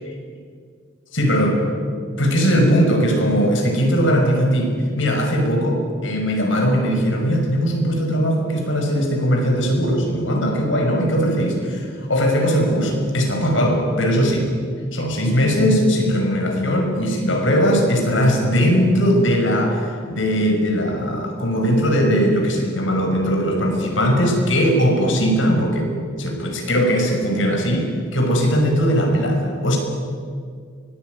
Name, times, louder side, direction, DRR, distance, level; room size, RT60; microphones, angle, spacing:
voice 1, 1.1-1.5 2.2-14.5 14.9-25.9 26.2-29.8, equal, 80° left, 2 dB, 6.1 m, -19 dB
24.0 x 19.5 x 9.5 m, 2.1 s
head